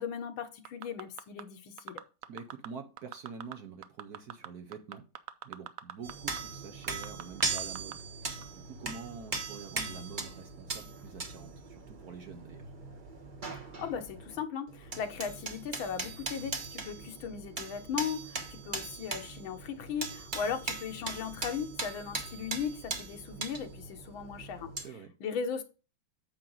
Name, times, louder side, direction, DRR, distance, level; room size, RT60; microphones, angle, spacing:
voice 1, 0.0-2.0 13.8-24.7 25.2-25.6, left 7 dB, 75° left, 1.7 m, -37 dB
sound 1, 0.6-1.4 1.8-2.7 3.0-3.5 3.8-6.1 6.4-6.5 6.8-7.9 8.4-8.5, right 11 dB, 75° right, 0.7 m, -42 dB
voice 2, 2.3-5.1 5.4-12.7 24.8-25.1, right 5 dB, 60° right, 1.2 m, -46 dB
sound 2, 6.0-14.4 14.7-24.8, right 3 dB, 30° right, 1.0 m, -39 dB
8.9 x 6.1 x 3.9 m
omnidirectional pair, 2.2 m